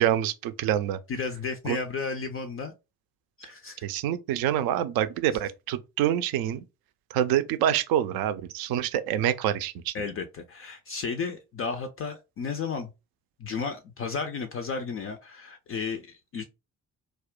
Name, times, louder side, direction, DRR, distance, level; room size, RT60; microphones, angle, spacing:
voice 1, 0.0-1.0 1.7-1.8 3.8-6.6 7.1-9.9, right 11 dB, 50° right, 0.5 m, -26 dB
voice 2, 1.1-2.7 3.4-3.9 9.9-12.9 13.4-16.4, left 5 dB, 30° left, 0.4 m, -33 dB
2.3 x 2.0 x 3.6 m
figure-of-eight pair, 40°, 47 cm